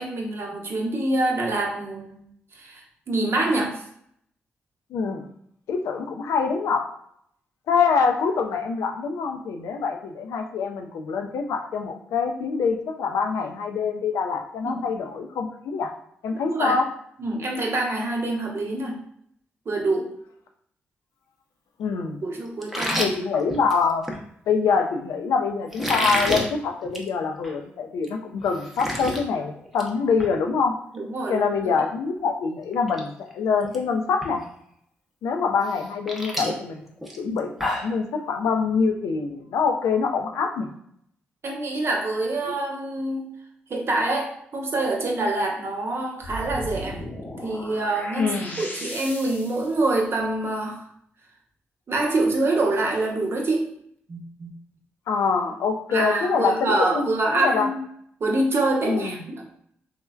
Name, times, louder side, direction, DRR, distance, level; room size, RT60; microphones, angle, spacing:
voice 1, 0.0-2.2 2.5-3.8 14.6-14.7 16.5-16.8 17.2-19.0 19.7-20.2 22.2-23.0 30.9-31.7 41.4-43.3 43.7-47.0 47.4-50.8 51.9-53.7 54.1-54.5 55.9-57.8 58.2-59.5, right 2 dB, 50° right, 0 dB, 0.7 m, -26 dB
voice 2, 4.9-5.2 5.7-6.9 7.7-15.9 16.2-16.9 21.8-22.2 23.0-24.1 24.5-30.7 31.3-34.4 35.2-36.8 37.2-40.7 48.2-48.6 55.1-57.1 57.3-57.7 58.8-59.1, left 5 dB, 75° left, 5 dB, 0.4 m, -25 dB
sound 1, 22.6-24.2 25.7-26.5 26.8-27.1 27.4-27.5 28.0-28.1 28.4-29.2 29.6-29.9 30.2-30.3 32.2-32.3 32.7-33.0 33.3-33.8 34.2-34.3 35.6-37.9, equal, 5° right, 0.7 m, -29 dB
sound 2, 46.2-49.8, left 1 dB, 35° left, 0.7 m, -36 dB
3.2 x 2.1 x 2.3 m, 0.67 s
supercardioid pair, 45°, 5 cm